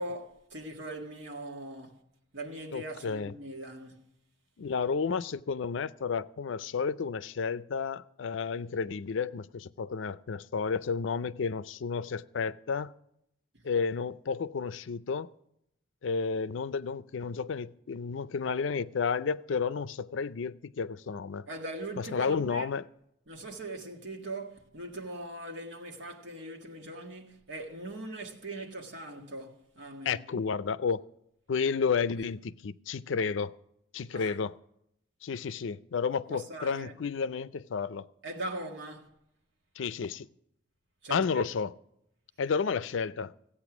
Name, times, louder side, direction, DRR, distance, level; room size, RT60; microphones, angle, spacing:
voice 1, 0.0-2.0 2.3-4.1 21.5-22.7 23.3-30.2 34.1-34.4 36.3-36.9 38.2-39.1 41.0-41.5, right 1 dB, 75° right, 1.7 m, -41 dB
voice 2, 2.7-3.3 4.6-12.9 13.6-15.3 16.0-21.5 22.0-22.8 30.1-31.0 31.5-33.5 33.9-34.6 35.2-38.1 39.8-40.3 41.1-41.7 42.4-43.3, left 5 dB, 80° left, 0.4 m, -31 dB
15.5 x 8.6 x 6.0 m
head